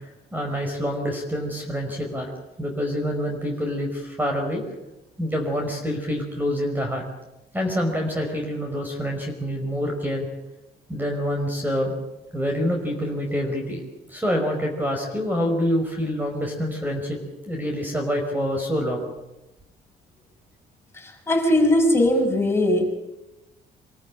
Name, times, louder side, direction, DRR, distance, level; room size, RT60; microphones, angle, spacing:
voice 1, 0.3-2.3 2.6-4.6 5.2-7.0 7.5-10.3 10.9-11.9 12.3-13.8 14.1-17.2 17.5-19.0, equal, 10° right, 2 dB, 5.2 m, -26 dB
voice 2, 20.9-22.9, left 1 dB, 15° left, 1 dB, 6.1 m, -20 dB
25.5 x 14.0 x 9.9 m, 0.98 s
cardioid pair, 110°, 17 cm